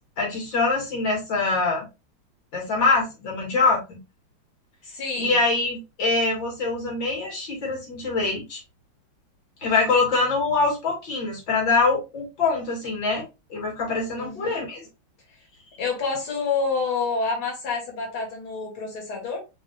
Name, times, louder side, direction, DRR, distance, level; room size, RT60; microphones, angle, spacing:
voice 1, 0.2-1.8 2.5-4.0 5.2-8.6 9.6-13.2 13.5-14.8, left 3 dB, 60° left, -3 dB, 3.0 m, -24 dB
voice 2, 4.8-5.4 14.2-14.6 15.8-19.4, left 4 dB, 80° left, -1 dB, 2.9 m, -28 dB
5.0 x 3.5 x 2.6 m, 0.26 s
omnidirectional pair, 2.3 m